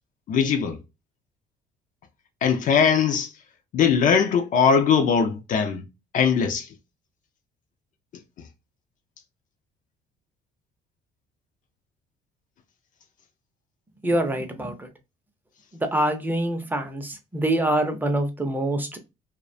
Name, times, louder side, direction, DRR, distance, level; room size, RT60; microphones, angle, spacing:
voice 1, 0.3-0.8 2.4-3.3 3.7-5.8 6.1-6.7, left 6 dB, 50° left, 0.4 m, -20 dB
voice 2, 14.0-14.9 15.7-19.0, right 1 dB, 10° right, 0.5 m, -25 dB
2.3 x 2.1 x 2.5 m
cardioid pair, 110°, 17 cm